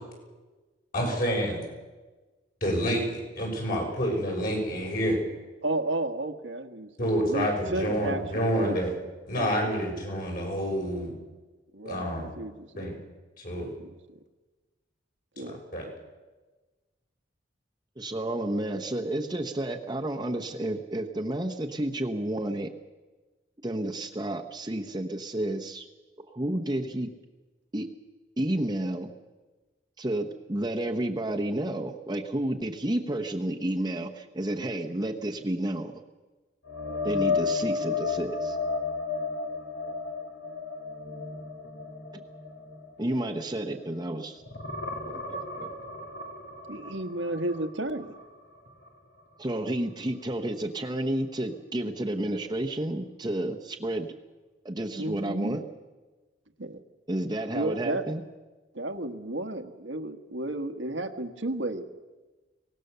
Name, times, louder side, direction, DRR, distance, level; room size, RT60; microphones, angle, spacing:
voice 1, 0.9-1.6 2.6-5.2 7.0-8.9 9.3-11.1 11.8-12.3 12.7-12.9 13.4-13.7 15.4-15.5 15.7-15.8, equal, 50° left, 0 dB, 6.7 m, -28 dB
voice 2, 5.6-8.8 9.3-9.9 11.7-13.0 13.6-13.9 15.4-15.6 46.7-48.2 55.0-55.6 56.6-56.8 57.5-58.0 58.7-61.8, right 1 dB, 85° right, 6 dB, 1.5 m, -33 dB
voice 3, 18.0-22.7 23.6-25.9 26.3-27.1 27.7-27.9 28.4-29.1 30.0-35.9 37.0-38.6 42.1-42.2 43.0-44.4 45.1-45.7 49.4-54.1 54.6-55.6 57.1-58.2, right 1 dB, 20° right, 3 dB, 1.0 m, -31 dB
sound 1, 36.7-44.1 44.4-48.3 48.7-48.9 52.2-52.3, left 4 dB, 75° left, 3.2 m, -33 dB
24.0 x 18.5 x 6.8 m, 1.2 s
head